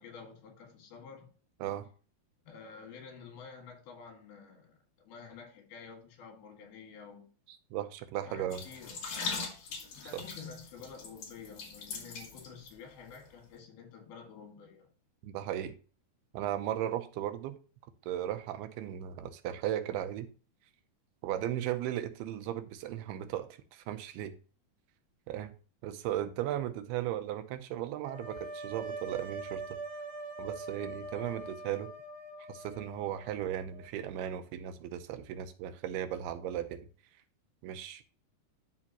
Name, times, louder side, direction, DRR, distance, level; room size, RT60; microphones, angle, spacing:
voice 1, 0.0-1.4 2.5-7.3 8.2-9.5 9.9-14.9, left 6 dB, 75° left, 3.9 m, -50 dB
voice 2, 7.7-8.6 10.1-10.2 15.2-15.8 16.3-17.6 18.1-20.3 21.2-24.3 25.3-25.5 25.8-29.8 30.4-31.9 32.5-36.9 37.6-38.0, right 11 dB, 85° right, 2.7 m, -36 dB
sound 1, 8.5-12.7 13.0-13.2, left 4 dB, 50° left, 2.2 m, -40 dB
sound 2, 28.0-33.9, right 3 dB, 70° right, 1.4 m, -43 dB
12.5 x 4.3 x 3.0 m
omnidirectional pair, 4.5 m